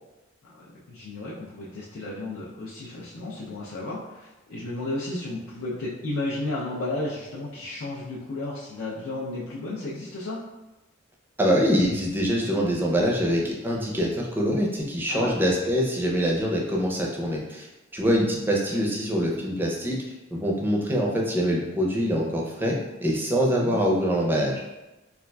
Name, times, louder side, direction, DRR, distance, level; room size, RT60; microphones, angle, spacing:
voice 1, 0.5-10.4 15.1-15.3 18.7-18.8 23.4-23.8, left 2 dB, 85° left, -6 dB, 0.5 m, -33 dB
voice 2, 11.4-17.7 17.9-20.0 20.3-22.7 23.0-24.6, equal, 10° right, -2 dB, 0.4 m, -24 dB
4.2 x 2.4 x 2.2 m, 1.1 s
head